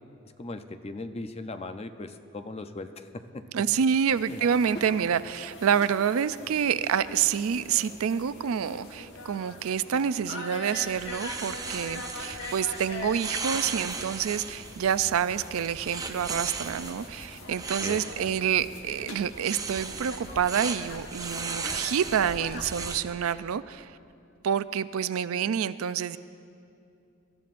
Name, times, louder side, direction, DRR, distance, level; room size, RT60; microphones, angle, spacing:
voice 1, 0.4-3.1 4.3-4.4 17.8-18.0, left 2 dB, 30° left, 8 dB, 0.5 m, -38 dB
voice 2, 3.5-23.9 24.4-26.2, right 8 dB, 80° right, 15 dB, 0.4 m, -28 dB
sound 1, 4.1-22.9, left 2 dB, 60° left, 1.4 m, -43 dB
sound 2, 10.9-23.0, right 4 dB, 15° right, 0.6 m, -37 dB
25.0 x 13.0 x 2.5 m, 2.6 s
head